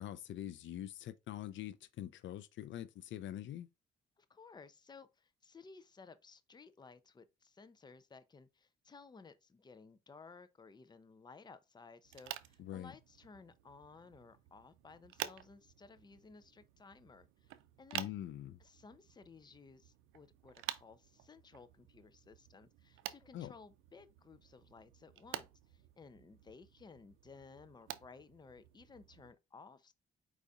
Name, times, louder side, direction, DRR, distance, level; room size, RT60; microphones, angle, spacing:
voice 1, 0.0-3.7 12.6-12.9 17.9-18.6 23.3-23.5, left 12 dB, 70° left, 0.5 m, -44 dB
voice 2, 4.2-17.5 17.8-18.1 18.6-29.9, left 4 dB, 20° left, 0.6 m, -57 dB
sound 1, 12.0-29.3, right 13 dB, 90° right, 0.5 m, -50 dB
4.8 x 4.1 x 2.4 m
cardioid pair, 90°, 20 cm